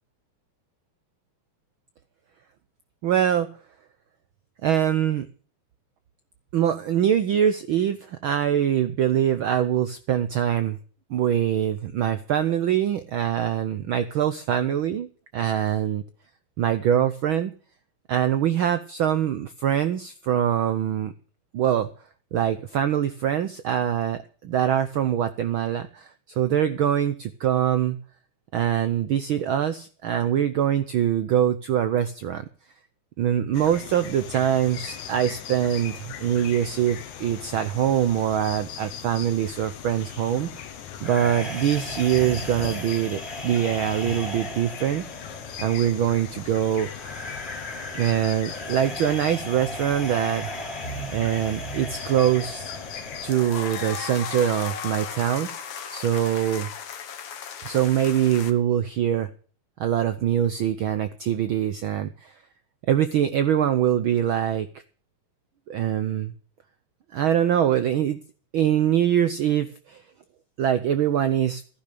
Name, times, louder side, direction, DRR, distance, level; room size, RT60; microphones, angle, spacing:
voice 1, 3.0-3.5 4.6-5.3 6.5-10.8 11.1-15.1 15.3-16.0 16.6-17.5 18.1-21.1 21.5-21.9 22.3-28.0 28.5-32.4 33.2-40.7 41.0-45.3 45.6-46.9 47.9-50.5 51.1-52.7 53.2-56.7 57.6-59.3 59.8-62.3 62.9-64.7 65.7-66.3 67.1-68.2 68.5-70.0 70.6-71.6, right 10 dB, 85° right, 11 dB, 1.1 m, -23 dB
sound 1, 33.5-53.3, left 9 dB, 85° left, 2.8 m, -39 dB
sound 2, 41.0-54.0, equal, 15° left, 2.9 m, -36 dB
sound 3, 53.3-58.5, left 7 dB, 55° left, 2.0 m, -35 dB
15.0 x 11.0 x 6.7 m, 0.43 s
omnidirectional pair, 3.3 m